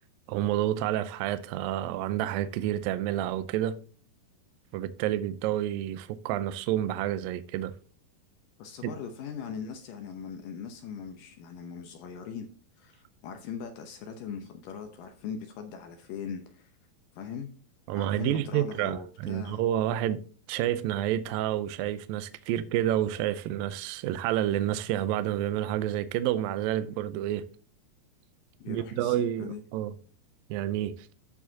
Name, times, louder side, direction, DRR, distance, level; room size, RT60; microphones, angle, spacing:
voice 1, 0.3-3.8 4.7-7.7 8.8-8.9 17.9-20.2 20.5-27.4 28.7-30.0 30.5-31.1, right 12 dB, 80° right, 2.1 m, -29 dB
voice 2, 8.6-12.5 12.8-16.7 17.2-17.5 17.9-19.6 28.6-29.6, left 7 dB, 75° left, 2.1 m, -40 dB
14.0 x 4.8 x 2.8 m
omnidirectional pair, 4.7 m